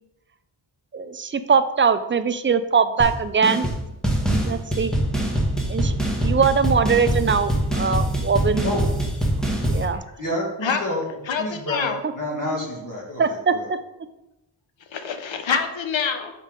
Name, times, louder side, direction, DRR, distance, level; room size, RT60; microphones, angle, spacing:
voice 1, 0.9-3.7 4.4-4.9 5.7-6.0 6.2-8.6 9.6-10.0 13.2-13.8, right 5 dB, 25° right, 11 dB, 0.3 m, -21 dB
sound 1, 3.0-3.1 3.4-3.8 4.0-9.8, right 1 dB, ahead, 1.2 m, -23 dB
voice 2, 10.2-11.0 11.4-13.7, left 1 dB, 40° left, -3 dB, 2.0 m, -29 dB
voice 3, 11.3-12.0 14.9-16.3, left 6 dB, 65° left, 7 dB, 0.8 m, -25 dB
5.3 x 5.3 x 3.8 m, 0.92 s
wide cardioid pair, 85°, 49 cm